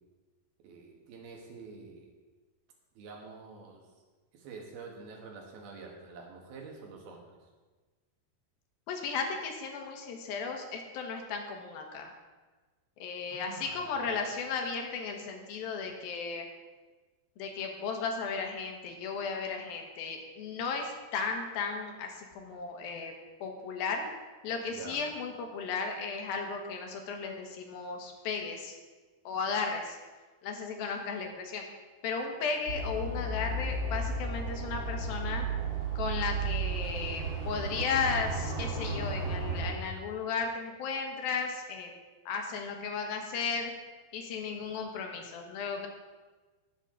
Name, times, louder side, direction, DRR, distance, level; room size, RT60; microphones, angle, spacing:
voice 1, 0.6-2.1 3.0-3.8 4.3-7.4 13.3-13.7 24.7-25.0 32.6-32.8, right 4 dB, 85° right, 1 dB, 3.7 m, -47 dB
voice 2, 8.9-12.1 13.0-16.5 17.4-23.1 23.4-24.0 24.4-28.8 29.2-30.0 30.4-31.6 32.0-35.4 36.0-41.9 42.3-43.7 44.1-45.9, left 5 dB, 80° left, 3 dB, 3.1 m, -35 dB
sound 1, 32.7-39.7, right 3 dB, 45° right, 2.0 m, -33 dB
18.0 x 8.3 x 3.9 m, 1.3 s
omnidirectional pair, 4.2 m